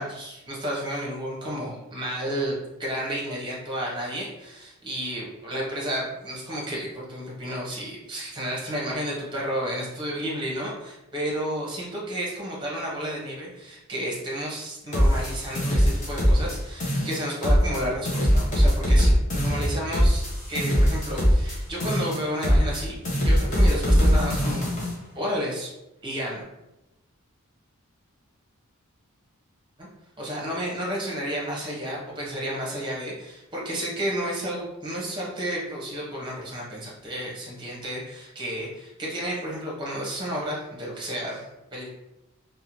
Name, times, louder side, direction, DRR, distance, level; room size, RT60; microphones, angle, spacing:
voice 1, 0.0-24.9 25.1-25.7 26.0-26.4 29.8-29.9 30.2-41.9, equal, 20° right, -4 dB, 0.8 m, -32 dB
sound 1, 14.9-16.6 16.8-17.8 18.1-21.6 21.8-22.8 23.1-24.9, equal, 35° left, 0.8 m, -21 dB
2.7 x 2.1 x 2.9 m, 0.94 s
head